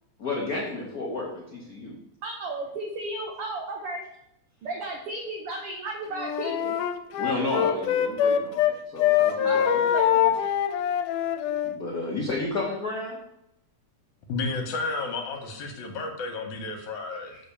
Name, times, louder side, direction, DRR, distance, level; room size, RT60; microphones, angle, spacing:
voice 1, 0.2-1.9 7.2-9.8 11.6-13.2, left 2 dB, 40° left, -4 dB, 1.4 m, -31 dB
voice 2, 2.2-4.1 4.6-6.8 9.4-10.3, right 2 dB, 60° right, 1 dB, 1.7 m, -34 dB
Wind instrument woodwind instrument, 6.1-8.7 9.0-11.8, left 10 dB, 90° left, 2.2 m, -24 dB
voice 3, 14.3-17.4, left 3 dB, 70° left, 4 dB, 2.7 m, -32 dB
6.9 x 5.2 x 7.0 m, 0.81 s
omnidirectional pair, 3.6 m